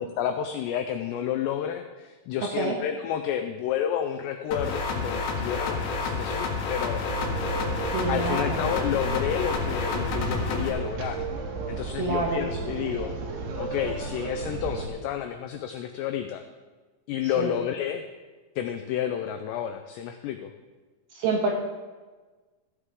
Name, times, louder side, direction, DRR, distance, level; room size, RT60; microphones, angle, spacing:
voice 1, 0.0-7.0 7.9-11.3 11.7-13.1 13.6-16.4 17.1-18.1 18.6-20.5, left 9 dB, 85° left, 7 dB, 2.4 m, -30 dB
sound 1, 4.5-10.7, left 4 dB, 70° left, 3.8 m, -29 dB
sound 2, 7.1-14.9, right 3 dB, 90° right, 1.8 m, -34 dB
voice 2, 7.9-8.6 12.0-12.4 17.3-17.5 21.2-21.5, right 3 dB, 65° right, -1 dB, 2.7 m, -27 dB
15.0 x 9.8 x 3.7 m, 1.3 s
omnidirectional pair, 5.6 m